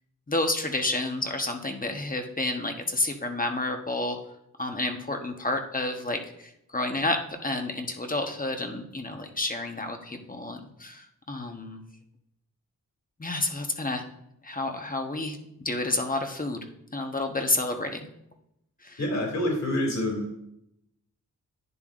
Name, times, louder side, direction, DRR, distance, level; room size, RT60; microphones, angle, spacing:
voice 1, 0.3-4.2 4.6-11.8 13.2-14.0 14.4-16.7 16.9-18.1 18.8-19.0, left 2 dB, 25° left, 4 dB, 1.1 m, -30 dB
voice 2, 19.0-20.4, left 1 dB, 55° left, 0 dB, 2.8 m, -27 dB
11.0 x 9.7 x 2.5 m, 0.79 s
wide cardioid pair, 95°, 33 cm